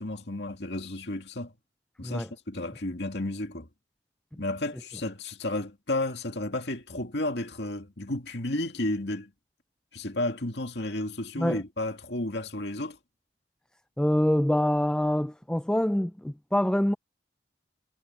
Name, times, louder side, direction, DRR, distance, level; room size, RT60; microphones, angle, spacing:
voice 1, 0.0-1.5 2.0-3.7 4.4-9.3 9.9-13.0, left 1 dB, 75° left, 2.2 m, -32 dB
voice 2, 14.0-16.9, left 1 dB, 5° left, 0.3 m, -25 dB
head